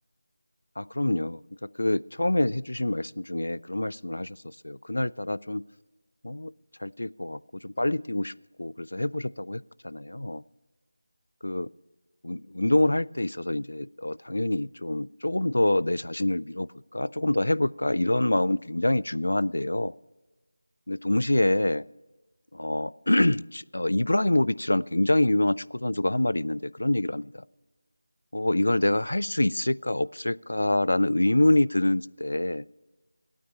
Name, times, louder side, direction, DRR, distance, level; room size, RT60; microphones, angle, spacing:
voice 1, 0.8-5.6 6.2-6.5 6.8-8.3 8.6-10.4 11.4-11.7 12.2-19.9 20.9-21.9 22.5-27.4 28.3-32.7, left 1 dB, 65° left, 20 dB, 0.3 m, -26 dB
16.0 x 9.2 x 5.6 m, 1.2 s
figure-of-eight pair, 165°, 0 cm